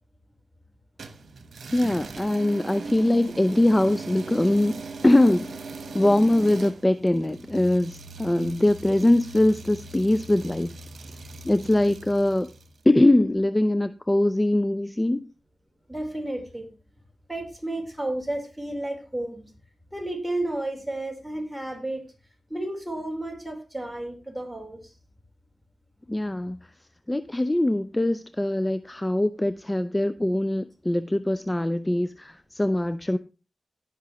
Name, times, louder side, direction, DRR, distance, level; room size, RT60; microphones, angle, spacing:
sound 1, 1.0-12.8, right 3 dB, 75° right, 1.2 m, -40 dB
voice 1, 1.7-5.6 5.9-10.7 11.4-12.5 12.9-15.3 26.1-26.6 27.1-33.2, left 1 dB, 20° left, 0.5 m, -22 dB
voice 2, 15.9-16.7 17.3-19.5 19.9-22.0 22.5-24.9, right 1 dB, 10° right, 4.0 m, -32 dB
17.5 x 6.0 x 3.0 m
cardioid pair, 45°, 0 cm